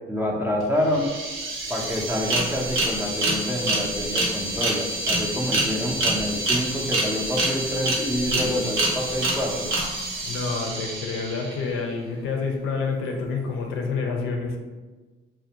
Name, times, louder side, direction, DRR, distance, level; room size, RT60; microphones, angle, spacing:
voice 1, 0.1-1.1 1.7-9.7, left 1 dB, 10° right, -1 dB, 0.4 m, -27 dB
sound 1, 0.6-0.7 0.9-11.7, right 2 dB, 90° right, 0.7 m, -27 dB
voice 2, 8.3-8.6 10.2-14.6, left 4 dB, 85° left, 2 dB, 0.5 m, -28 dB
2.4 x 2.1 x 2.8 m, 1.3 s
cardioid pair, 90°, 20 cm